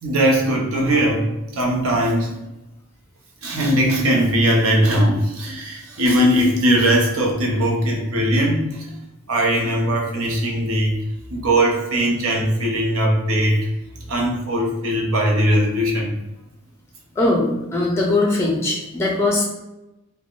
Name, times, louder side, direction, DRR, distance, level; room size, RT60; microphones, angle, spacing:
voice 1, 0.0-2.4 3.4-8.9 9.3-11.0 11.3-13.6 14.1-16.1, equal, 70° right, -1 dB, 0.7 m, -19 dB
voice 2, 17.2-17.5 17.7-19.4, left 2 dB, 10° left, -2 dB, 0.4 m, -20 dB
3.3 x 2.1 x 2.5 m, 0.95 s
head